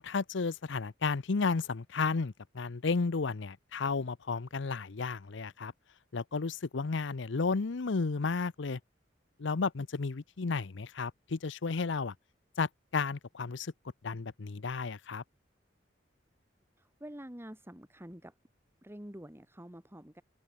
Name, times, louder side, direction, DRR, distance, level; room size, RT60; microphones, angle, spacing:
voice 1, 0.0-5.7 6.1-8.8 9.4-12.1 12.6-13.7 14.0-15.2, left 4 dB, 70° left, 0.7 m, -33 dB
voice 2, 16.8-18.3 18.8-20.2, equal, 15° right, 2.2 m, -47 dB
open air
head